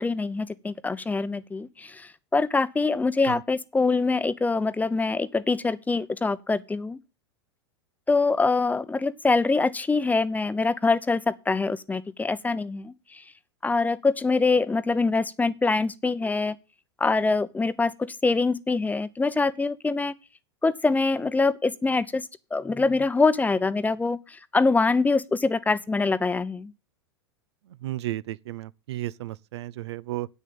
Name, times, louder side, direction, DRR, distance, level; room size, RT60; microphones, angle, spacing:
voice 1, 0.0-7.0 8.1-13.2 13.6-16.6 17.0-20.1 20.6-22.2 22.5-26.7, left 3 dB, 10° left, 0.7 m, -24 dB
voice 2, 27.8-30.3, right 15 dB, 75° right, 0.6 m, -33 dB
8.6 x 6.7 x 6.9 m
hypercardioid pair, 100°, 14 cm